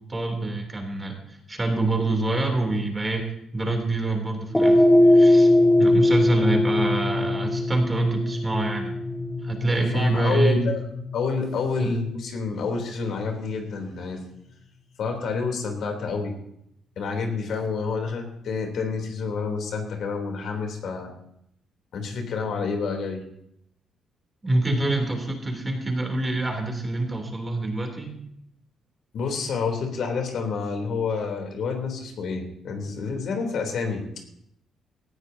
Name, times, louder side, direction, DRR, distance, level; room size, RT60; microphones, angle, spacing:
voice 1, 0.1-3.2 3.5-4.8 5.1-5.5 5.8-8.9 9.4-10.7 11.8-11.9 24.4-28.2, right 2 dB, 20° right, 2 dB, 3.2 m, -26 dB
sound 1, 4.5-13.0, left 1 dB, 5° left, 1.7 m, -21 dB
voice 2, 9.9-10.8 11.1-14.2 15.0-16.3 17.0-21.1 21.9-23.2 29.1-34.0, left 4 dB, 65° left, 3 dB, 3.3 m, -28 dB
18.5 x 13.5 x 2.8 m, 0.74 s
cardioid pair, 100°, 0 cm